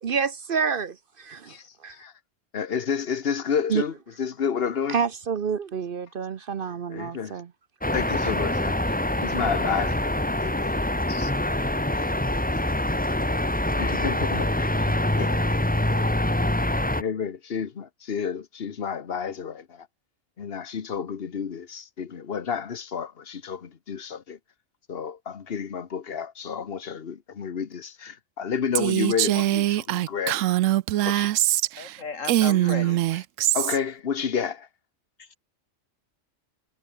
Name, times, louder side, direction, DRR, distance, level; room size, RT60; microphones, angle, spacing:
voice 1, 0.0-1.6 1.8-1.9 3.7-3.8 4.9-7.5, right 6 dB, 50° right, 0.8 m, -28 dB
voice 2, 1.5-2.1 2.5-5.0 6.9-7.4 7.9-11.3 11.9-12.1 13.8-15.4 15.9-16.1 17.0-19.9 20.4-24.4 24.9-30.5 31.0-31.3 32.6-33.2 33.5-34.7, left 7 dB, 50° left, 1.4 m, -31 dB
sound 1, 7.8-17.0, left 1 dB, 5° left, 1.1 m, -25 dB
Female speech woman speaking, 28.8-31.9 32.2-33.8, right 14 dB, 85° right, 0.9 m, -23 dB
voice 3, 31.8-33.0 35.2-35.4, left 5 dB, 85° left, 2.4 m, -35 dB
omnidirectional pair, 1.3 m